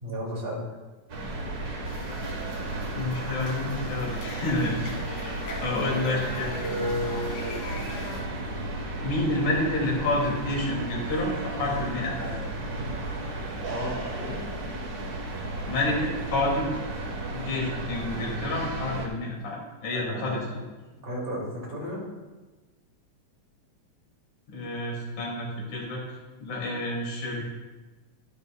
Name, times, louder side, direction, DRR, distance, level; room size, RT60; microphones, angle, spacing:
voice 1, 0.0-0.6 5.6-5.9 13.7-14.4 19.9-20.5 20.9-22.1, equal, 20° right, -4 dB, 2.2 m, -34 dB
sound 1, 1.1-19.1, right 2 dB, 55° right, 1.0 m, -34 dB
sound 2, 1.9-8.2, left 2 dB, 90° left, 3.1 m, -40 dB
voice 2, 2.9-4.9 5.2-5.3 5.6-7.6 9.0-12.4 15.7-16.7 17.3-20.6 24.5-26.0 26.4-27.5, left 2 dB, 75° left, -4 dB, 3.7 m, -29 dB
11.0 x 11.0 x 2.2 m, 1.2 s
omnidirectional pair, 3.3 m